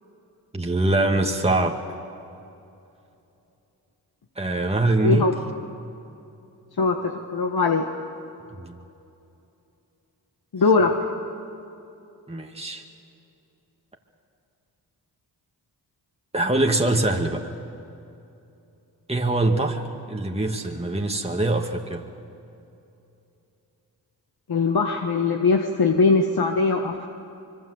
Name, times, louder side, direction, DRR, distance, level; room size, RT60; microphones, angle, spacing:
voice 1, 0.5-1.8 4.4-5.3 8.6-8.8 12.3-12.8 16.3-17.5 19.1-22.0, right 2 dB, 15° right, 2 dB, 2.1 m, -23 dB
voice 2, 5.0-5.3 6.8-7.9 10.5-10.9 24.5-27.1, left 4 dB, 60° left, 3 dB, 1.8 m, -21 dB
25.5 x 22.5 x 8.0 m, 2.7 s
cardioid pair, 45°, 42 cm